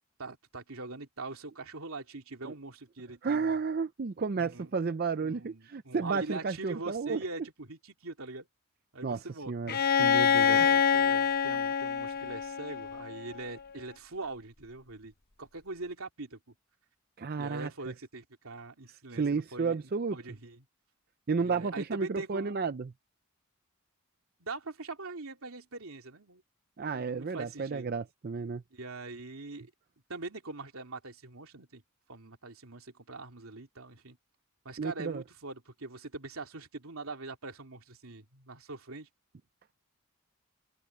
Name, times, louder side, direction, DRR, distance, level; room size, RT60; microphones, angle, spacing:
voice 1, 0.2-3.6 4.4-4.7 5.2-8.5 8.9-9.6 10.4-15.1 15.4-16.4 17.4-20.7 21.4-22.6 24.4-26.4 26.8-27.9 28.7-29.7 30.1-31.8 32.1-34.2 34.6-39.1, right 3 dB, 80° right, 2.8 m, -42 dB
voice 2, 3.2-7.2 9.0-10.7 17.2-17.7 19.1-20.2 21.3-22.9 26.8-28.6 34.8-35.2, right 4 dB, 45° right, 0.5 m, -32 dB
Bowed string instrument, 9.7-13.5, left 7 dB, 45° left, 1.1 m, -26 dB
head